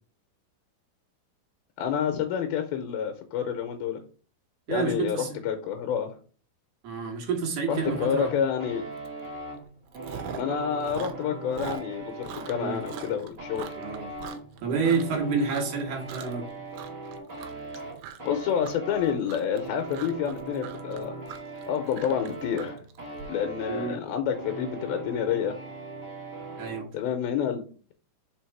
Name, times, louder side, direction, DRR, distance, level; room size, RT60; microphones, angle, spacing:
voice 1, 1.8-4.0 4.7-6.1 7.7-8.8 10.4-13.8 18.2-21.1 21.7-22.8 23.3-25.6 26.9-27.7, left 8 dB, 85° left, 6 dB, 2.5 m, -28 dB
voice 2, 4.7-5.4 6.8-8.3 12.5-12.8 13.8-14.1 14.6-16.5 23.7-24.0 26.6-26.9, right 5 dB, 60° right, 1 dB, 2.6 m, -29 dB
sound 1, 7.7-26.9, right 2 dB, 40° right, 1.7 m, -40 dB
Chewing mastication, 9.1-9.3 9.6-10.6 10.8-15.2 15.5-15.8 16.1-16.5 16.7-23.2, right 9 dB, 85° right, 2.6 m, -42 dB
5.1 x 4.6 x 4.5 m, 0.40 s
omnidirectional pair, 4.4 m